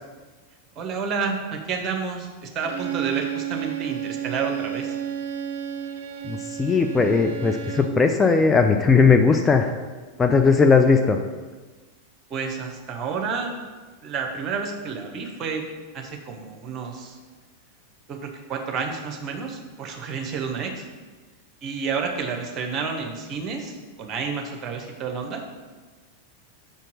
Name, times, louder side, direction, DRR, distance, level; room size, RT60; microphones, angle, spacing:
voice 1, 0.7-5.0 12.3-13.5 14.0-15.6 15.9-17.2 18.1-20.9 21.6-25.4, right 5 dB, 30° right, 3 dB, 1.2 m, -30 dB
Bowed string instrument, 2.6-8.1, right 9 dB, 50° right, 0.6 m, -31 dB
voice 2, 6.2-9.7 10.2-11.2, left 4 dB, 15° left, 4 dB, 0.4 m, -18 dB
6.2 x 4.4 x 6.3 m, 1.3 s
figure-of-eight pair, 90°, 0 cm